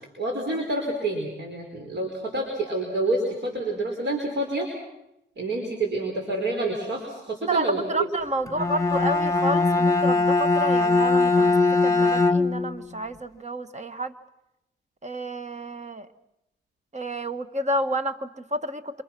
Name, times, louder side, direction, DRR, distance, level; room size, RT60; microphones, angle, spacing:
voice 1, 0.2-4.7 5.4-8.1, right 2 dB, 60° right, 1 dB, 5.0 m, -28 dB
voice 2, 7.5-11.6 11.8-14.1 15.0-16.1 16.9-19.0, right 1 dB, 35° right, 10 dB, 1.5 m, -30 dB
Bowed string instrument, 8.5-12.8, left 3 dB, 15° left, 1.6 m, -21 dB
27.5 x 26.5 x 6.1 m, 0.85 s
cardioid pair, 70°, 21 cm